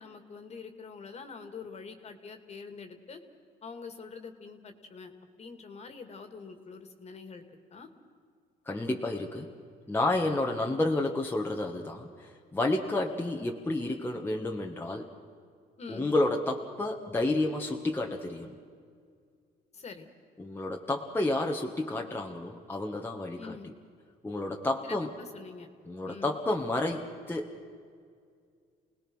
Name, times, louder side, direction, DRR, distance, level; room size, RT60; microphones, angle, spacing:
voice 1, 0.0-3.2 3.6-5.1 5.4-7.4 7.7-7.9 15.8-16.1 19.7-20.1 23.4-23.7 24.8-25.7 26.1-26.4, left 5 dB, 40° left, 7 dB, 2.4 m, -45 dB
voice 2, 8.6-9.5 9.9-15.1 15.9-18.5 20.4-23.7 24.2-25.1 25.9-27.5, left 2 dB, 15° left, 0 dB, 1.6 m, -30 dB
29.0 x 19.5 x 6.3 m, 2.2 s
cardioid pair, 110°, 17 cm